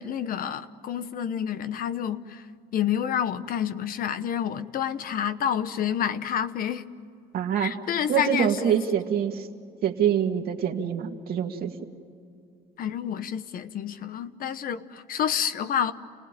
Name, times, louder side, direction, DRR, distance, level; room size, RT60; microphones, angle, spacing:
voice 1, 0.0-2.4 2.7-6.8 7.6-8.8 12.8-15.9, left 9 dB, 60° left, 1.1 m, -29 dB
voice 2, 7.3-7.7 8.1-9.5 9.8-11.7, right 9 dB, 65° right, 2.3 m, -25 dB
30.0 x 18.5 x 9.1 m
cardioid pair, 110°, 17 cm